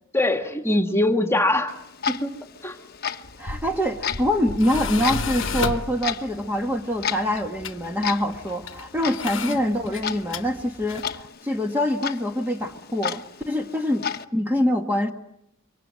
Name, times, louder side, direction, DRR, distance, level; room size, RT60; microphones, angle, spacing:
voice 1, 0.1-1.7 2.1-2.3 2.6-2.8 9.4-9.6, left 1 dB, 15° left, 5 dB, 1.9 m, -22 dB
Clock, 1.7-14.2, left 7 dB, 50° left, 1.1 m, -34 dB
Tools, 3.2-11.2, left 4 dB, 65° left, 1.2 m, -34 dB
voice 2, 3.4-15.1, left 1 dB, 10° right, 3 dB, 1.6 m, -25 dB
26.0 x 24.5 x 7.7 m, 0.79 s
head